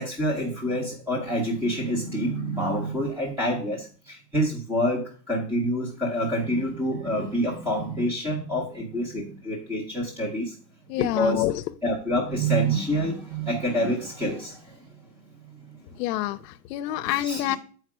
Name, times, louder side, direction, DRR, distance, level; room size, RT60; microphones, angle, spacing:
voice 1, 0.0-10.6 10.9-11.4 11.8-14.9 15.4-16.2 16.9-17.6, equal, 5° right, 0 dB, 0.6 m, -27 dB
voice 2, 10.9-11.5 16.0-17.6, left 14 dB, 75° left, 12 dB, 0.6 m, -26 dB
7.6 x 4.5 x 4.8 m, 0.41 s
supercardioid pair, 160°, 49 cm